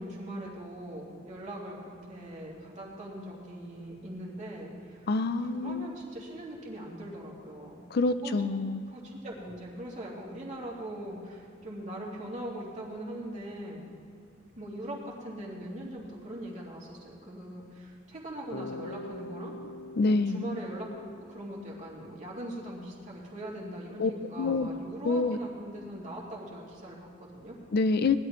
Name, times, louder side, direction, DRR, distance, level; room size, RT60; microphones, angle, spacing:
voice 1, 0.0-5.1 5.4-7.8 8.2-8.6 8.9-13.8 14.6-19.5 20.0-27.5, right 1 dB, 40° right, -4 dB, 2.8 m, -41 dB
voice 2, 5.1-5.9 7.9-8.8 20.0-20.4 24.0-24.1 24.4-24.7 25.0-25.4 27.7-28.2, left 3 dB, 50° left, 11 dB, 0.4 m, -26 dB
Bass guitar, 18.5-22.5, left 2 dB, 85° left, 0.8 m, -44 dB
19.5 x 11.5 x 3.1 m, 2.4 s
head